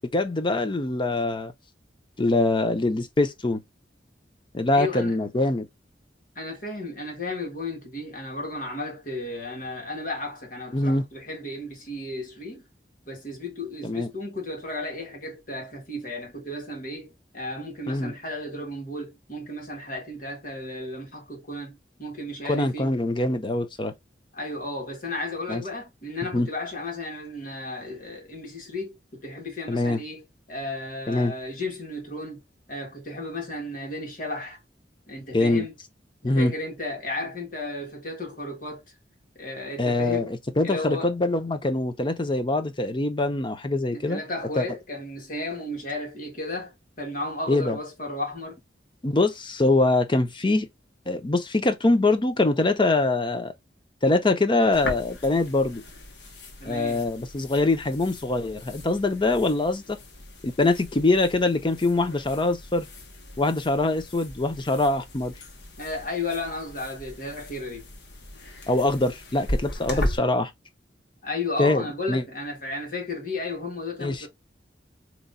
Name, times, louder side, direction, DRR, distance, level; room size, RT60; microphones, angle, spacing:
voice 1, 0.1-1.5 2.2-3.6 4.5-5.7 10.7-11.1 13.8-14.1 17.9-18.1 22.4-23.9 25.5-25.6 26.3-26.5 29.7-30.0 31.1-31.3 35.3-35.7 36.2-36.5 39.8-44.2 44.6-44.7 47.5-47.8 49.0-50.7 51.1-53.5 54.0-55.8 56.6-59.8 60.4-62.9 63.4-65.3 68.7-70.5 71.6-71.8 72.1-72.2 74.0-74.3, left 2 dB, 30° left, 0.7 m, -23 dB
voice 2, 4.7-5.2 6.4-12.6 13.1-22.9 24.3-32.4 32.7-34.6 35.1-35.7 36.2-38.8 39.4-40.3 40.6-41.1 43.9-48.6 56.6-57.0 65.8-67.9 69.9-70.0 71.2-74.3, left 2 dB, 50° left, 1.8 m, -34 dB
sound 1, 54.7-70.2, left 1 dB, 75° left, 1.1 m, -37 dB
4.0 x 3.0 x 2.2 m
head